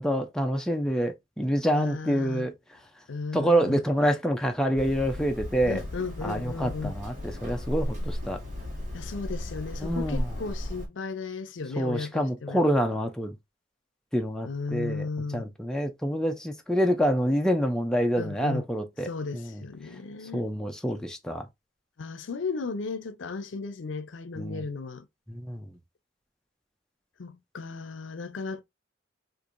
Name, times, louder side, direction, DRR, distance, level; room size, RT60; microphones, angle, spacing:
voice 1, 0.0-2.5 3.3-5.8 6.2-8.4 9.8-10.3 11.8-13.4 14.1-15.1 15.3-19.6 20.3-21.5 24.4-24.6 25.3-25.7, equal, 5° left, 0.4 m, -27 dB
voice 2, 1.7-2.5 3.1-3.8 5.6-6.9 8.9-12.6 14.4-15.4 18.2-18.6 19.0-20.5 22.0-25.1 27.2-28.6, left 4 dB, 80° left, 0.5 m, -35 dB
Hammer, 4.8-10.9, left 1 dB, 45° right, 1.3 m, -35 dB
4.5 x 2.5 x 2.5 m
head